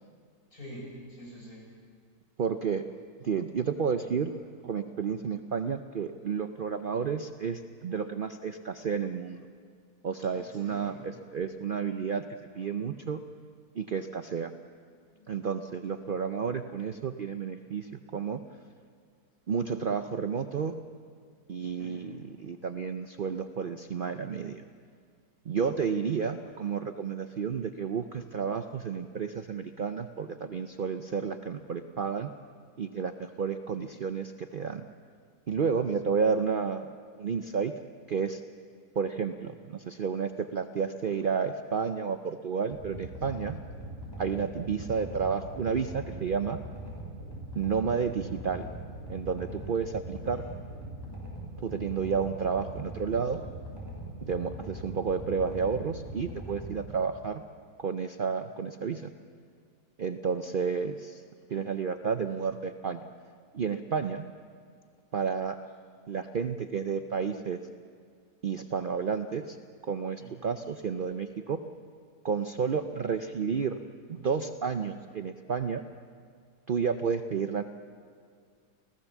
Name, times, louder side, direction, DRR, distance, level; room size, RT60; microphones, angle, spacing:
voice 1, 0.5-1.7 10.3-11.0 15.1-15.6 21.6-22.0 50.3-50.6 61.5-61.7 68.5-68.6 70.2-70.3 70.6-70.8, equal, 55° left, -3 dB, 6.7 m, -48 dB
voice 2, 2.4-2.8 3.2-4.3 4.6-9.5 10.0-10.9 11.3-12.2 12.5-13.2 13.8-14.5 15.3-18.4 19.5-20.7 21.5-24.6 25.5-32.3 32.8-34.9 35.5-36.8 37.2-37.7 38.1-38.4 39.0-43.6 44.2-46.6 47.6-48.7 49.1-50.5 51.6-53.4 54.2-57.4 57.8-59.1 60.0-61.2 61.5-63.0 63.5-64.3 65.1-65.6 66.1-67.6 68.4-69.6 69.9-71.6 72.2-73.8 74.1-75.9 76.7-77.6, right 6 dB, 90° right, 8 dB, 0.4 m, -31 dB
sound 1, 42.7-56.7, right 1 dB, 15° left, 6.1 m, -41 dB
28.5 x 16.0 x 7.2 m, 2.1 s
omnidirectional pair, 1.8 m